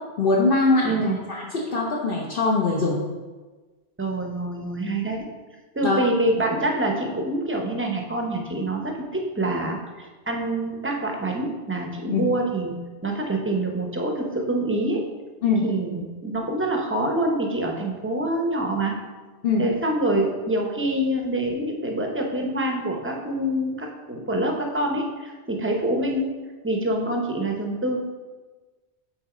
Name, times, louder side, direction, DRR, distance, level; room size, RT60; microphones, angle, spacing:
voice 1, 0.2-0.9 1.3-3.0 5.8-6.0 12.0-12.3 15.4-15.6 19.4-19.7, left 3 dB, 55° left, -3 dB, 0.9 m, -22 dB
voice 2, 0.8-1.2 4.0-5.2 5.7-12.8 13.0-15.0 15.6-18.9 19.6-26.3 26.6-28.0, right 1 dB, 15° right, 1 dB, 0.6 m, -26 dB
6.0 x 4.0 x 4.9 m, 1.3 s
omnidirectional pair, 1.2 m